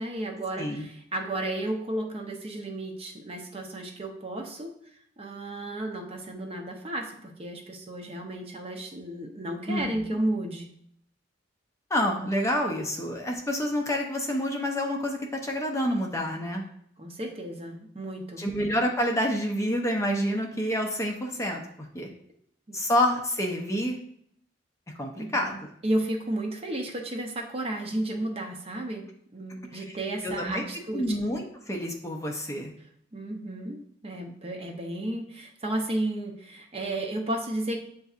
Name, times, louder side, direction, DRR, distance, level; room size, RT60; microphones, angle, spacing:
voice 1, 0.0-4.7 5.2-10.7 17.0-18.5 22.7-22.8 25.2-25.5 25.8-29.0 29.3-31.2 33.1-37.8, right 1 dB, 30° right, 2 dB, 0.6 m, -33 dB
voice 2, 9.7-10.0 11.9-16.6 18.4-21.6 21.9-22.1 22.7-24.0 25.0-25.7 29.7-29.8 30.2-30.6 30.9-32.7, equal, 15° left, 1 dB, 0.5 m, -28 dB
7.8 x 2.6 x 2.4 m, 0.70 s
head